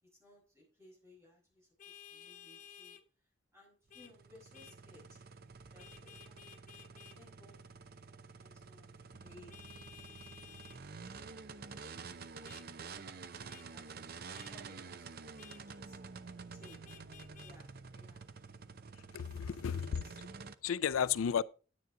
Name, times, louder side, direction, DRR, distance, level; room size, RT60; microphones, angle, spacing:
voice 1, 0.0-5.2 5.7-6.5 6.9-8.9 9.2-9.5 10.0-11.0 11.6-12.3 12.8-13.0 13.7-13.9 14.2-16.0 16.5-16.8 17.4-18.7 19.5-19.7 20.0-20.2, left 1 dB, 15° right, 6.2 m, -62 dB
Vehicle horn car horn honking, 1.8-3.0 3.9-4.1 4.5-4.8 5.8-7.2 9.5-10.8 12.4-12.6 13.5-13.7 14.3-14.5 15.4-15.6 16.6-17.5, left 8 dB, 40° left, 0.7 m, -55 dB
sound 1, 3.9-20.5, right 4 dB, 50° right, 0.6 m, -49 dB
voice 2, 19.1-20.3 20.6-21.4, left 7 dB, 90° left, 0.4 m, -33 dB
9.8 x 9.5 x 3.7 m
head